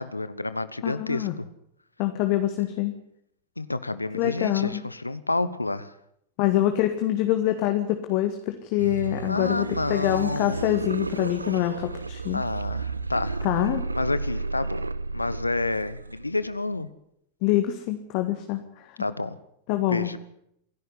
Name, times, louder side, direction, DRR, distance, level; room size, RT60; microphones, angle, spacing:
voice 1, 0.0-1.5 3.6-5.9 9.3-10.8 12.3-13.4 14.0-14.9 15.1-16.9 19.0-19.4 19.9-20.2, left 2 dB, 85° left, 14 dB, 1.0 m, -29 dB
voice 2, 0.8-1.3 2.0-2.9 4.1-4.8 6.4-12.4 13.4-13.8 17.4-18.6 18.9-19.0 19.7-20.2, left 13 dB, 45° left, 7 dB, 1.9 m, -25 dB
sound 1, 8.8-16.8, right 3 dB, 80° right, 0.8 m, -33 dB
27.0 x 11.5 x 9.9 m, 0.74 s
figure-of-eight pair, 90°, 0 cm